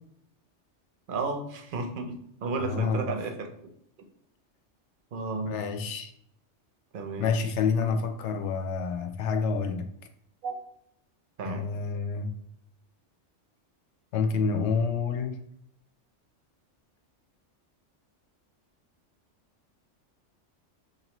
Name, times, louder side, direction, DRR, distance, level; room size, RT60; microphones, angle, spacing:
voice 1, 1.1-3.7 5.1-5.6 6.9-7.3 10.4-10.6 11.4-11.7, right 3 dB, 55° right, 4 dB, 0.7 m, -33 dB
voice 2, 2.6-3.1 5.5-6.1 7.2-9.9 11.5-12.3 14.1-15.4, left 5 dB, 75° left, 6 dB, 0.9 m, -28 dB
6.4 x 2.6 x 3.0 m, 0.73 s
omnidirectional pair, 1.2 m